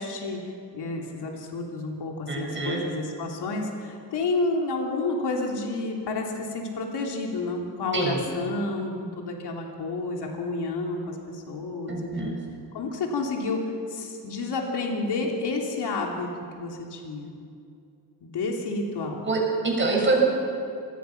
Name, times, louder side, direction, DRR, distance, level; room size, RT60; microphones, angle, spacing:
voice 1, 0.0-12.4 12.7-16.3 16.5-17.3 18.2-19.3, left 3 dB, 90° left, 1 dB, 3.1 m, -30 dB
voice 2, 2.3-2.8 7.9-8.2 11.9-12.4 19.2-20.2, right 3 dB, 30° right, -2 dB, 6.7 m, -25 dB
25.5 x 20.0 x 5.9 m, 2.5 s
wide cardioid pair, 140°, 39 cm